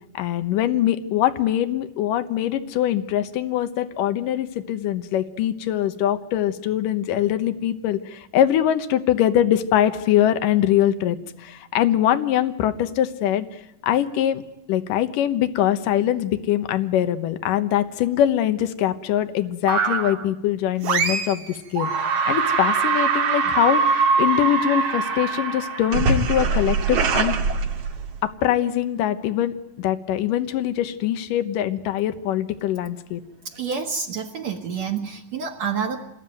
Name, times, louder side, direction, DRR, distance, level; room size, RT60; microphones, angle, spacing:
voice 1, 0.1-13.5 13.8-14.4 14.7-21.9 22.3-27.3 28.2-33.2, left 11 dB, 80° left, 9 dB, 2.8 m, -23 dB
sound 1, 19.7-20.2 20.8-21.5 21.8-28.2, right 5 dB, 85° right, 4.2 m, -22 dB
voice 2, 33.4-36.0, right 6 dB, 60° right, -2 dB, 2.6 m, -28 dB
28.0 x 21.0 x 9.3 m, 0.87 s
omnidirectional pair, 3.8 m